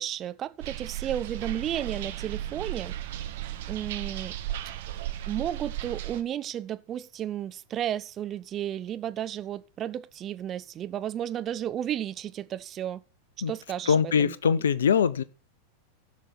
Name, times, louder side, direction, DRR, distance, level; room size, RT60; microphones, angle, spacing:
voice 1, 0.0-3.0 3.7-4.4 5.3-13.0 13.5-14.6, right 10 dB, 30° right, 0.5 m, -33 dB
sound 1, 0.6-6.2, right 12 dB, 55° right, 1.0 m, -35 dB
voice 2, 13.9-15.2, left 7 dB, 65° left, 0.6 m, -22 dB
16.0 x 5.9 x 4.2 m
figure-of-eight pair, 90°, 0 cm